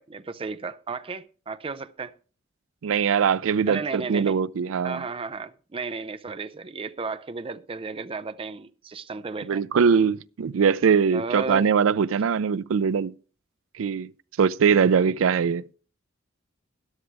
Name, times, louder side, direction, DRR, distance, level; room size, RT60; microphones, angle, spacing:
voice 1, 0.0-2.1 3.7-4.4 4.8-9.6 11.1-11.7, right 4 dB, 30° right, 0.5 m, -34 dB
voice 2, 2.8-5.0 9.4-13.1 13.8-14.1 14.4-15.6, right 6 dB, 90° right, 0.4 m, -22 dB
13.0 x 11.0 x 3.3 m
head